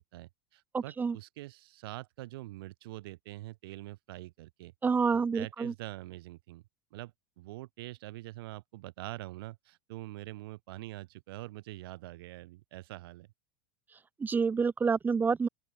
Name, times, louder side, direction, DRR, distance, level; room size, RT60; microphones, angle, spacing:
voice 1, 0.0-4.7 5.1-6.6 6.9-13.3, right 18 dB, 75° right, 5.0 m, -45 dB
voice 2, 0.7-1.2 4.8-5.7 14.2-15.5, right 5 dB, 15° right, 1.6 m, -28 dB
open air
supercardioid pair, 145°, 12 cm